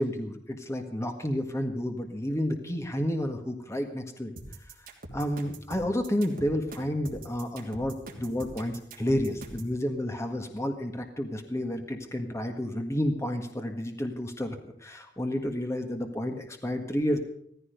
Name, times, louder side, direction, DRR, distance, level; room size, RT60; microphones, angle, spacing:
voice 1, 0.0-4.3 5.1-17.2, equal, 15° left, 5 dB, 1.6 m, -30 dB
sound 1, 4.4-9.7, right 2 dB, 50° right, 3.2 m, -43 dB
16.5 x 15.0 x 5.2 m, 0.68 s
head